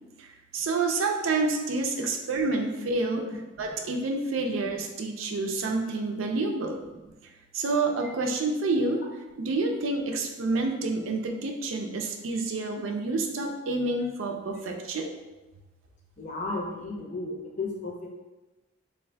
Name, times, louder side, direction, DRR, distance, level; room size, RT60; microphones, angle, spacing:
voice 1, 0.2-7.0 7.5-9.0 9.4-15.1, right 3 dB, 80° right, 3 dB, 0.4 m, -28 dB
voice 2, 16.2-18.1, left 2 dB, 40° left, -2 dB, 0.6 m, -34 dB
3.5 x 2.5 x 3.3 m, 1.1 s
head